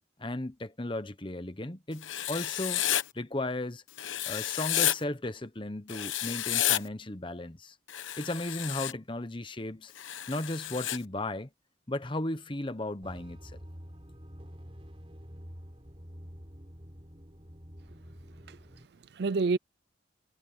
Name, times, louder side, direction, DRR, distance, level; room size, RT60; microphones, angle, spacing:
voice 1, 0.2-2.8 3.1-3.8 4.3-7.7 8.2-9.9 10.3-11.5 11.9-13.6, left 2 dB, 25° left, 1.0 m, -35 dB
Writing, 2.0-3.0 4.0-5.0 5.9-6.8 7.9-8.9 10.0-11.0, left 12 dB, 85° left, 1.0 m, -31 dB
sound 1, 13.0-18.9, equal, 30° right, 4.5 m, -47 dB
voice 2, 18.3-19.6, right 4 dB, 55° right, 0.5 m, -31 dB
head